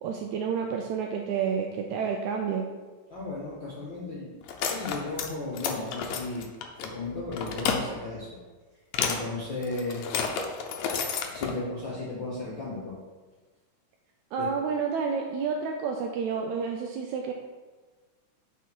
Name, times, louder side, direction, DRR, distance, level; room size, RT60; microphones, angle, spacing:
voice 1, 0.0-2.7 14.3-17.3, right 6 dB, 85° right, 2 dB, 1.7 m, -30 dB
voice 2, 3.1-4.3 4.6-6.5 6.8-8.4 9.0-10.1 11.3-13.0 14.4-14.5, left 2 dB, 60° left, -6 dB, 1.2 m, -35 dB
sound 1, 4.4-5.3 5.5-6.9 7.3-7.8 8.9-9.2 9.6-11.5, left 6 dB, 75° left, 1.8 m, -30 dB
8.1 x 4.5 x 4.5 m, 1.3 s
omnidirectional pair, 3.8 m